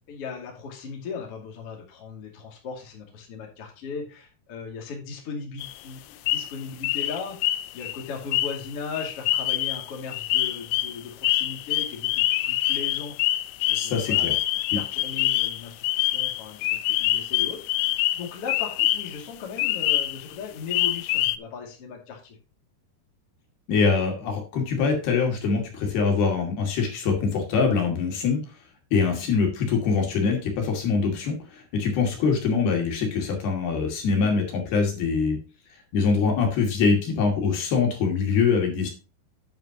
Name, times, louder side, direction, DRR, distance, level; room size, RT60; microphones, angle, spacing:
voice 1, 0.1-13.4 13.6-14.3 14.7-22.4 29.1-29.2, left 5 dB, 40° left, 0 dB, 2.8 m, -38 dB
sound 1, 5.6-5.7 6.3-6.5 6.8-19.2 19.6-20.3 20.7-21.4, left 15 dB, 90° left, 2.8 m, -25 dB
voice 2, 13.7-14.4 23.7-28.4 28.9-35.4 35.9-38.9, left 5 dB, 70° left, 1 dB, 4.3 m, -24 dB
9.4 x 9.0 x 2.9 m, 0.33 s
omnidirectional pair, 4.9 m